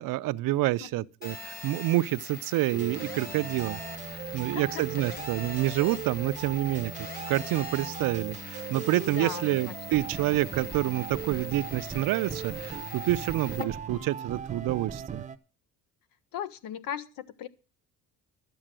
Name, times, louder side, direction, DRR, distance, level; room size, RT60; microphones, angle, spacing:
voice 1, 0.0-3.8 4.1-15.2, right 16 dB, 70° right, 0.6 m, -28 dB
Telephone, 1.2-13.6, left 4 dB, 25° left, 1.5 m, -43 dB
sound 1, 2.7-15.4, right 7 dB, 20° right, 0.7 m, -38 dB
voice 2, 4.3-5.1 8.0-8.1 9.1-10.0 16.3-17.5, left 9 dB, 85° left, 1.1 m, -38 dB
12.0 x 7.9 x 7.5 m
cardioid pair, 165°, 33 cm